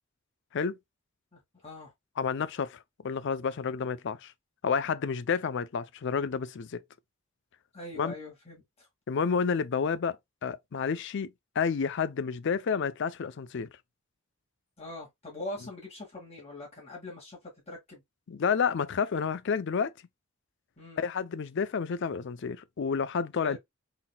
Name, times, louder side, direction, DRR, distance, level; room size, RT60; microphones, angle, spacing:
voice 1, 1.3-1.9 7.7-8.9 14.8-18.0 20.8-21.0 23.4-23.6, left 1 dB, 30° left, 2.0 m, -42 dB
voice 2, 2.2-4.3 4.6-6.8 8.0-8.1 9.1-13.7 18.3-19.9 21.0-23.6, left 6 dB, 60° left, 0.4 m, -30 dB
4.0 x 3.9 x 2.2 m
head